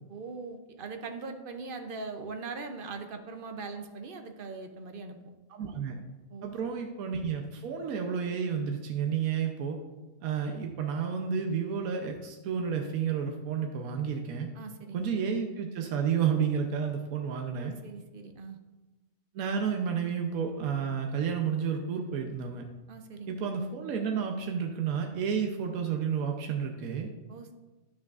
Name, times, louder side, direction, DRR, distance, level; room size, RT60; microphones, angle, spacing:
voice 1, 0.1-5.2 6.3-6.5 14.5-15.0 17.6-18.6 22.9-23.3 27.3-27.5, right 4 dB, 55° right, 6 dB, 0.6 m, -41 dB
voice 2, 5.5-6.0 6.4-9.8 10.2-14.5 14.9-17.7 19.3-22.6 23.3-27.1, right 7 dB, 85° right, 3 dB, 1.1 m, -31 dB
9.8 x 6.3 x 2.4 m, 1.1 s
omnidirectional pair, 1.5 m